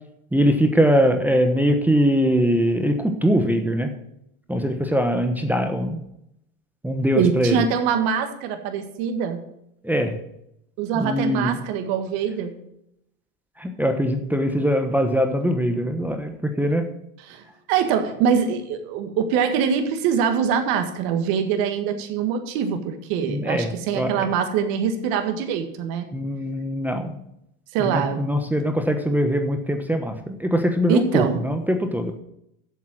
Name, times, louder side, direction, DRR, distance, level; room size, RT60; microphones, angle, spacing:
voice 1, 0.3-3.9 4.5-6.0 6.8-7.6 9.8-10.2 10.9-11.5 13.6-16.9 23.2-24.2 26.1-27.1 27.8-32.1, equal, 5° right, 4 dB, 1.0 m, -22 dB
voice 2, 7.1-9.4 10.8-12.5 17.3-26.1 27.7-28.2 30.9-31.4, right 7 dB, 60° right, 6 dB, 1.9 m, -23 dB
8.0 x 7.2 x 7.5 m, 0.79 s
supercardioid pair, 110°, 41 cm